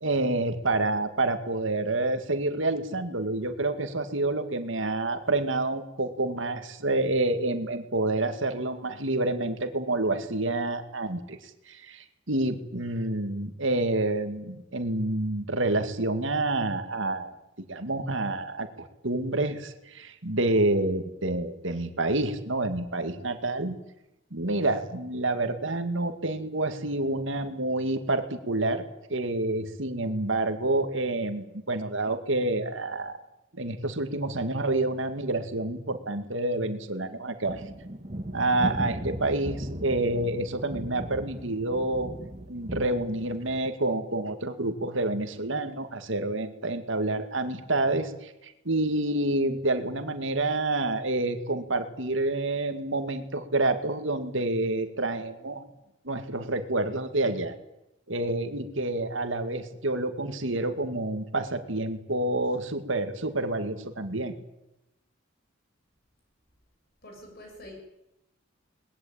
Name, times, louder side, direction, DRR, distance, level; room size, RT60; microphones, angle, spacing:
voice 1, 0.0-23.8 24.3-28.8 29.1-33.2 33.5-37.6 38.3-42.2 42.5-55.6 56.0-57.6 58.1-64.3, right 2 dB, 70° right, 8 dB, 2.3 m, -28 dB
sound 1, 37.4-43.7, right 1 dB, 35° right, 2.2 m, -37 dB
voice 2, 67.0-67.8, left 1 dB, 50° left, 1 dB, 6.9 m, -45 dB
21.5 x 20.5 x 9.0 m, 0.90 s
head